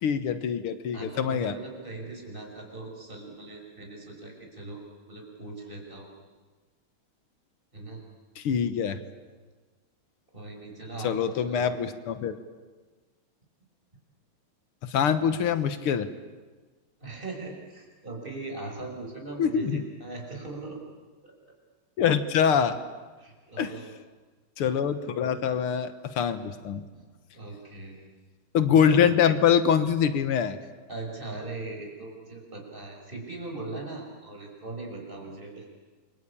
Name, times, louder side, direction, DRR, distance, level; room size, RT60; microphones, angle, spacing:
voice 1, 0.0-1.5 8.4-9.0 11.0-12.4 14.8-16.1 19.4-19.8 22.0-22.8 23.6-23.7 24.6-26.8 28.5-30.6, left 8 dB, 85° left, 11 dB, 2.2 m, -24 dB
voice 2, 0.9-6.1 7.7-8.0 10.3-11.8 17.0-20.8 21.2-21.3 23.2-23.9 26.9-27.0 27.3-28.0 30.9-35.7, right 3 dB, 20° right, 0 dB, 5.9 m, -40 dB
28.5 x 24.0 x 8.7 m, 1.3 s
omnidirectional pair, 2.4 m